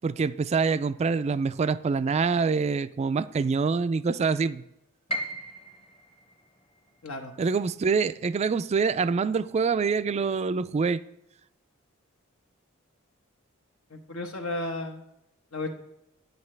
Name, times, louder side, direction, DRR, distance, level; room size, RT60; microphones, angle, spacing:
voice 1, 0.0-4.6 7.4-11.0, right 5 dB, 30° right, 0.3 m, -25 dB
Piano, 5.1-11.0 11.4-12.5 12.9-13.0 13.7-14.1, right 1 dB, 25° left, 0.9 m, -41 dB
voice 2, 7.0-7.3 13.9-15.0 15.5-15.8, left 2 dB, 80° left, 1.2 m, -33 dB
9.4 x 9.4 x 3.3 m
head